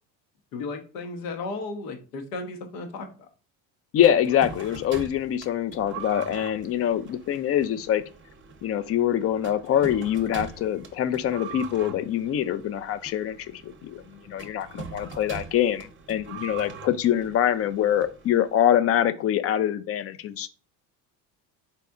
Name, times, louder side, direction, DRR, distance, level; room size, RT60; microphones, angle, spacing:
voice 1, 0.5-3.3, left 3 dB, 75° left, 5 dB, 1.0 m, -35 dB
voice 2, 3.9-8.0 8.6-20.5, left 10 dB, 30° left, 13 dB, 0.4 m, -24 dB
sound 1, 4.0-18.7, right 6 dB, 25° right, 0.8 m, -43 dB
4.2 x 4.1 x 2.4 m, 0.35 s
hypercardioid pair, 70°, 49 cm